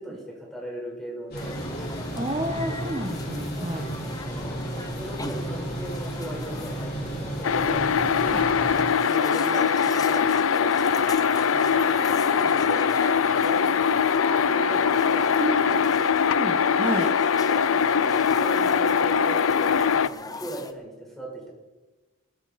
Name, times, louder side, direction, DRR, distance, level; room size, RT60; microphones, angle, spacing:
voice 1, 0.0-1.6 4.0-7.8 8.5-11.1 11.5-13.7 14.5-15.8 17.0-21.5, right 1 dB, ahead, -2 dB, 4.9 m, -39 dB
sound 1, 1.3-8.8, right 1 dB, 45° left, 6.0 m, -33 dB
sound 2, 1.4-20.7, left 3 dB, 15° left, 0.8 m, -39 dB
voice 2, 2.2-3.9 8.2-8.4 15.4-15.6 16.4-17.1, right 1 dB, 25° right, 0 dB, 1.5 m, -30 dB
sound 3, 7.4-20.1, left 6 dB, 70° left, 0.5 m, -22 dB
20.0 x 14.5 x 4.4 m, 1.2 s
head